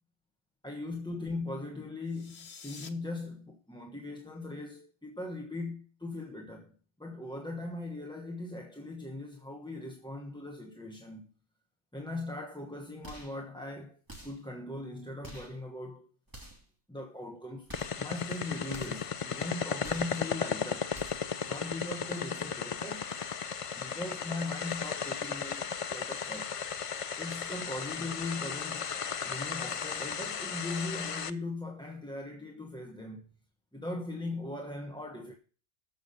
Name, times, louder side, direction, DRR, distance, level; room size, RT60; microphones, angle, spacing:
voice 1, 0.6-6.7 7.0-11.3 11.9-14.0 14.2-16.1 16.9-20.9 21.5-23.1 23.8-26.5 27.2-28.9 29.2-33.4 33.7-35.3, left 2 dB, 5° left, 1.1 m, -39 dB
sound 1, 2.0-2.9, left 6 dB, 65° left, 1.3 m, -48 dB
sound 2, 13.0-13.4 14.1-14.5 15.2-15.6 16.3-16.7 17.6-18.0 18.7-19.1 19.8-20.2 20.9-21.3, right 1 dB, 15° right, 3.2 m, -48 dB
sound 3, 17.7-31.3, left 6 dB, 45° left, 0.4 m, -35 dB
13.5 x 6.1 x 5.4 m
omnidirectional pair, 1.2 m